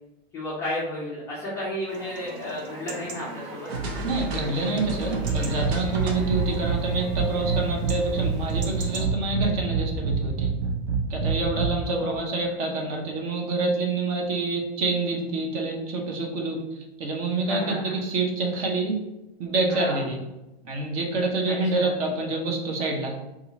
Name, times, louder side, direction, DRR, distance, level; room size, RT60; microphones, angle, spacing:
voice 1, 0.3-3.7 11.9-12.2 17.5-17.9 19.7-20.0 21.5-21.9, left 1 dB, 10° left, -9 dB, 0.3 m, -32 dB
Chatter / Livestock farm animals working animals / Chirp tweet, 1.9-9.1, right 1 dB, 60° right, 0.9 m, -40 dB
sound 1, 3.7-11.7, right 4 dB, 85° right, 0.8 m, -27 dB
voice 2, 4.0-10.5 11.1-19.0 19.4-20.2 20.6-23.2, right 2 dB, 35° right, 1 dB, 0.7 m, -27 dB
2.8 x 2.4 x 4.0 m, 0.97 s
supercardioid pair, 155°, 31 cm